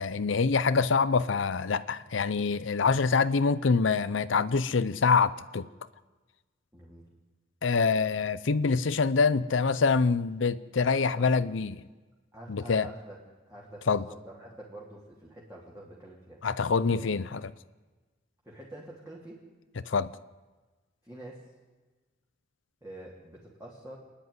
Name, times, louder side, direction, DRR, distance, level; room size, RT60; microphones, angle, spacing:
voice 1, 0.0-5.7 7.6-11.8 12.5-12.9 13.9-14.0 16.4-17.4 19.9-20.1, left 4 dB, 75° left, 0.6 m, -25 dB
voice 2, 6.7-7.1 10.9-11.4 12.3-13.2 13.5-16.4 16.8-17.1 18.4-19.4 21.0-21.5 22.8-24.0, right 1 dB, 15° right, 3.1 m, -47 dB
27.5 x 10.5 x 9.6 m
head